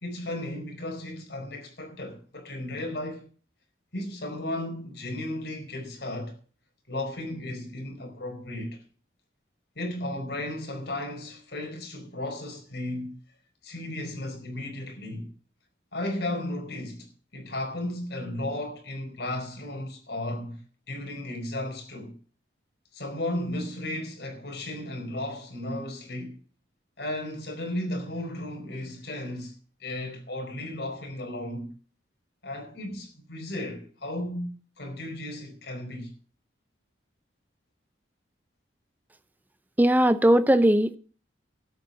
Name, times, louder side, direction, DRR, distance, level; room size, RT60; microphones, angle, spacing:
voice 1, 0.0-3.2 3.9-6.4 6.9-8.8 9.8-13.2 13.6-15.3 15.9-20.6 20.9-22.1 22.9-26.4 27.0-31.7 32.4-36.1, left 1 dB, 60° left, 4.6 m, -34 dB
voice 2, 39.8-41.0, right 1 dB, 10° right, 0.6 m, -19 dB
13.0 x 8.2 x 7.0 m
head